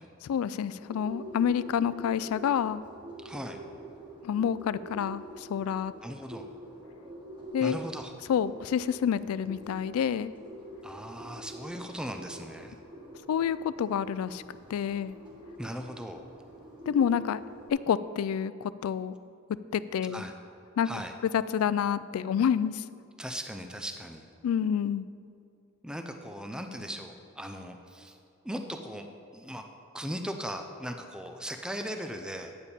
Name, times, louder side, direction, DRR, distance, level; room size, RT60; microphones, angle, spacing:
voice 1, 0.2-2.8 4.2-5.9 7.5-7.8 8.3-10.3 13.3-14.4 14.7-15.1 16.9-17.4 17.7-19.2 19.7-20.2 20.8-20.9 21.3-22.8 24.4-25.1, left 8 dB, 80° left, 17 dB, 0.3 m, -28 dB
Bird, 0.7-17.7, right 1 dB, 20° right, 1.5 m, -46 dB
voice 2, 3.2-3.6 6.0-6.5 7.6-8.1 10.8-12.8 15.6-16.2 20.1-20.3 20.8-21.1 23.2-24.2 25.8-28.2 28.4-29.1 29.3-29.6 29.9-32.5, equal, 5° right, 5 dB, 0.4 m, -38 dB
9.6 x 7.0 x 4.2 m, 2.5 s
head